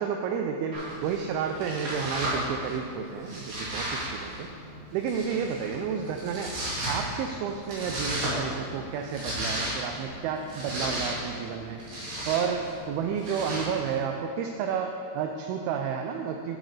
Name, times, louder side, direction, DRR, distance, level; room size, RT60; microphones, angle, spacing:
voice 1, 0.0-4.5 4.9-6.6 6.8-12.0 12.3-16.6, right 7 dB, 80° right, 3 dB, 2.3 m, -31 dB
Domestic sounds home sounds, 0.7-13.9, right 1 dB, 60° right, 4.3 m, -35 dB
13.0 x 8.0 x 3.2 m, 2.5 s
omnidirectional pair, 4.7 m